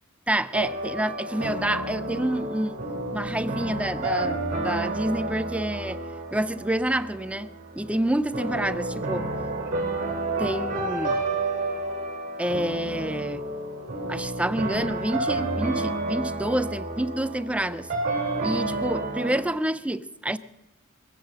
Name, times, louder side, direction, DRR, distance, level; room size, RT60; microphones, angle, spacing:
voice 1, 0.3-2.8 3.1-6.0 6.3-7.5 7.7-9.3 10.4-11.2 12.4-13.4 14.1-17.9 18.4-20.4, right 1 dB, 5° right, 0.4 m, -28 dB
sound 1, 0.5-19.4, right 2 dB, 35° right, 2.9 m, -30 dB
24.0 x 8.1 x 6.5 m
head